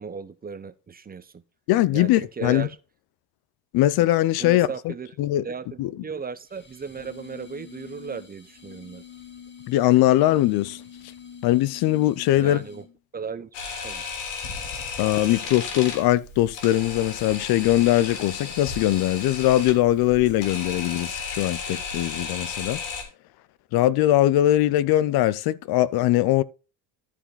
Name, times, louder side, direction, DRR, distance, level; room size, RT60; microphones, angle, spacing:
voice 1, 0.0-1.4 1.9-2.8 4.4-5.1 5.4-9.0 12.3-12.9 13.1-13.5 13.8-14.1, right 6 dB, 20° right, 0.8 m, -36 dB
voice 2, 1.7-2.7 3.7-4.9 5.2-5.4 5.8-5.9 9.7-10.8 11.4-12.6 15.0-22.8 23.7-26.4, left 14 dB, 65° left, 0.7 m, -21 dB
sound 1, 6.5-13.0, left 7 dB, 25° left, 2.1 m, -45 dB
Camera, 13.5-23.0, left 5 dB, 90° left, 3.3 m, -34 dB
13.5 x 5.0 x 4.1 m
cardioid pair, 105°, 40 cm